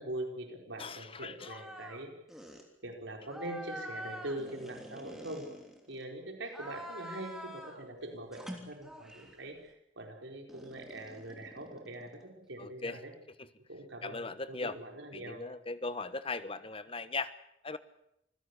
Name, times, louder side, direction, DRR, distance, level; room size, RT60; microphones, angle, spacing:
voice 1, 0.0-2.1 2.8-5.5 5.9-13.1 13.7-15.5, right 1 dB, 80° right, 3 dB, 4.6 m, -43 dB
voice 2, 0.8-1.6 12.6-13.0 14.0-14.8 15.1-17.3 17.6-17.8, left 3 dB, 30° left, 13 dB, 1.2 m, -38 dB
sound 1, 1.4-2.0 2.3-2.6 3.3-6.0 6.5-7.8 8.3-9.4 10.5-12.3, equal, ahead, 3.2 m, -46 dB
26.0 x 16.5 x 8.3 m, 0.79 s
head